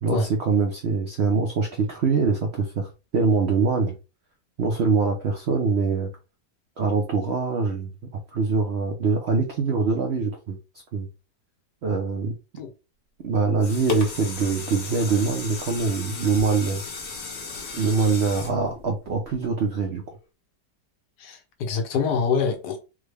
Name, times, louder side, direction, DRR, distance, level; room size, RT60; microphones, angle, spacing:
voice 1, 0.0-4.0 4.6-6.1 6.8-10.6 10.9-11.1 11.8-12.3 13.2-16.8 17.7-20.0, right 4 dB, 70° right, 0.6 m, -24 dB
sound 1, 13.3-19.6 20.1-20.2, left 4 dB, 50° left, 0.8 m, -35 dB
voice 2, 21.2-22.8, left 5 dB, 80° left, 1.4 m, -25 dB
3.6 x 2.1 x 3.3 m
omnidirectional pair, 1.9 m